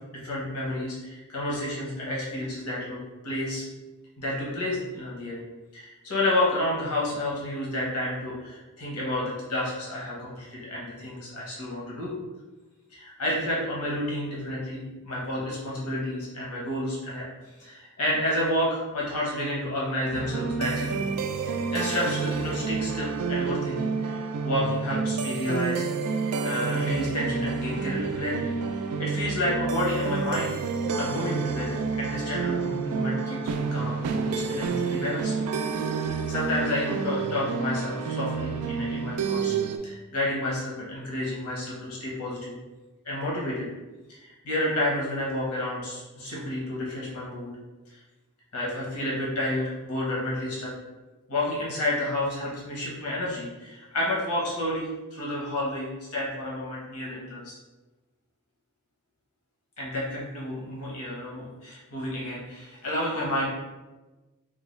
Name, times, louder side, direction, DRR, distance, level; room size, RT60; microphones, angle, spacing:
voice 1, 0.1-3.6 4.2-5.4 5.7-12.2 12.9-17.3 17.6-21.0 21.4-25.9 26.4-30.5 31.0-35.4 35.9-39.5 39.8-42.6 43.0-43.7 44.1-47.5 47.9-48.0 48.5-50.7 51.3-57.6 59.8-63.4, left 1 dB, 85° left, -5 dB, 0.9 m, -30 dB
sound 1, 20.1-39.8, right 5 dB, 90° right, 0.3 m, -29 dB
3.8 x 2.3 x 3.1 m, 1.2 s
head